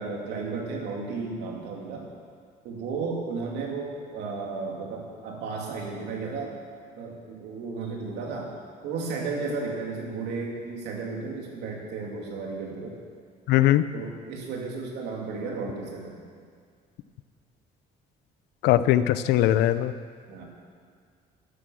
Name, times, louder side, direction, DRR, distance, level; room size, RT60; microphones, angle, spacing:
voice 1, 0.0-2.1 2.6-6.6 7.0-8.5 8.8-13.0 13.9-16.2 20.3-20.4, right 4 dB, 80° right, 0 dB, 2.7 m, -34 dB
voice 2, 13.5-13.9 18.6-19.9, left 13 dB, 85° left, 14 dB, 0.6 m, -20 dB
12.5 x 9.9 x 6.3 m, 2.1 s
cardioid pair, 110°, 17 cm